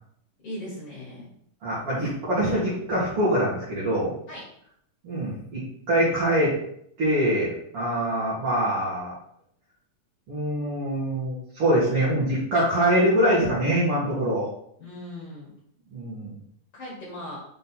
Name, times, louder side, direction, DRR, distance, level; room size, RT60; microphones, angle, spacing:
voice 1, 0.4-1.3 4.3-4.4 14.8-15.5 16.7-17.4, left 1 dB, 50° left, -7 dB, 2.7 m, -38 dB
voice 2, 1.6-4.1 5.0-6.5 7.0-9.1 10.3-14.5 15.9-16.4, right 1 dB, 45° right, -8 dB, 2.6 m, -24 dB
6.0 x 3.8 x 4.1 m, 0.69 s
omnidirectional pair, 3.7 m